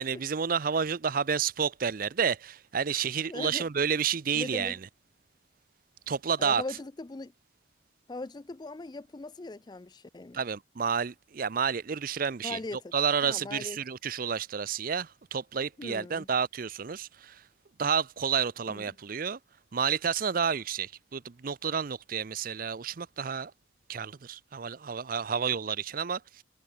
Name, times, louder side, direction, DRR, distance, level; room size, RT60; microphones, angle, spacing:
voice 1, 0.0-4.8 6.1-6.6 10.3-12.6 12.9-17.4 17.8-19.4 19.7-23.5 23.9-26.4, right 6 dB, 45° right, 0.5 m, -30 dB
voice 2, 3.3-3.7 4.3-4.8 6.4-7.3 8.1-10.4 12.4-12.9 13.3-13.8 15.8-16.3 18.7-19.0, left 2 dB, 20° left, 0.4 m, -39 dB
head